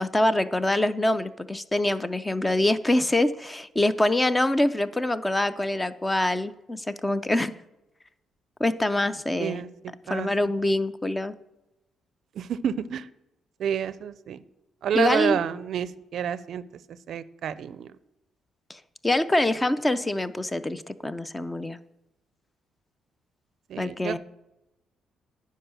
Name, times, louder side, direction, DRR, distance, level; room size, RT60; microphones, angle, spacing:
voice 1, 0.0-7.6 8.6-9.6 10.1-11.3 14.9-15.4 18.7-21.8 23.8-24.2, left 1 dB, 15° left, 14 dB, 0.5 m, -25 dB
voice 2, 9.4-9.7 10.1-10.3 12.3-13.1 13.6-14.4 14.8-16.6 17.1-17.9 23.7-24.2, right 8 dB, 65° right, 16 dB, 0.4 m, -29 dB
10.0 x 4.7 x 6.8 m, 0.91 s
cardioid pair, 90°, 0 cm